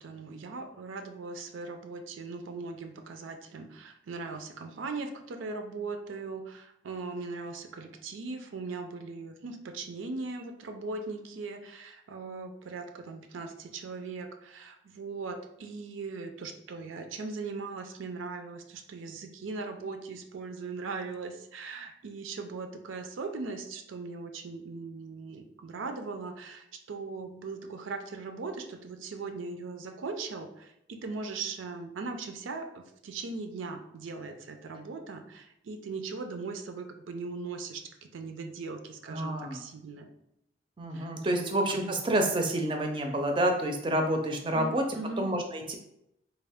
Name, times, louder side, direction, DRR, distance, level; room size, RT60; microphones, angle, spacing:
voice 1, 0.0-40.1 40.9-41.9 44.5-45.3, right 4 dB, 90° right, 6 dB, 0.5 m, -39 dB
voice 2, 39.1-39.6 40.8-44.8 45.2-45.8, right 1 dB, 25° right, 4 dB, 0.4 m, -28 dB
3.4 x 2.4 x 3.4 m, 0.79 s
head